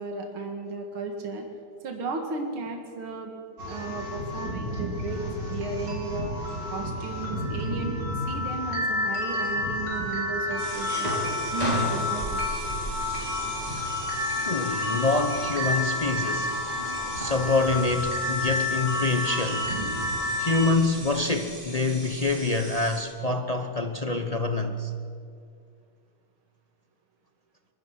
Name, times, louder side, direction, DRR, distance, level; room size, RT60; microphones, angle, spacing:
voice 1, 0.0-1.5 1.8-6.3 6.7-11.1 11.5-12.4, right 3 dB, 75° right, 2.8 m, -34 dB
sound 1, 3.6-20.7, left 2 dB, 55° right, 3.9 m, -30 dB
sound 2, 10.6-23.0, equal, 15° right, 5.5 m, -36 dB
voice 2, 14.4-16.6 17.1-19.8 20.4-24.9, left 3 dB, 55° left, 0.4 m, -26 dB
24.0 x 21.0 x 5.8 m
omnidirectional pair, 2.3 m